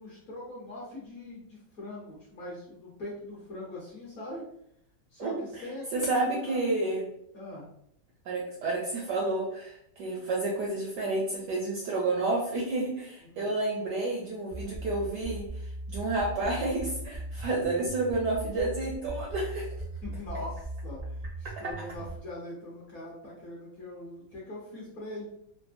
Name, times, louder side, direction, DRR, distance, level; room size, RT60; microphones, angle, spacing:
voice 1, 0.0-4.4 5.1-6.6 7.3-7.7 13.2-13.5 20.0-25.2, left 1 dB, 55° left, -5 dB, 1.0 m, -42 dB
voice 2, 5.2-5.6 5.9-7.1 8.3-15.5 15.9-19.7 21.6-21.7, right 2 dB, 75° right, -2 dB, 0.9 m, -30 dB
sound 1, 14.5-22.2, right 1 dB, 15° right, 0.5 m, -38 dB
3.3 x 2.1 x 2.4 m, 0.74 s
omnidirectional pair, 2.2 m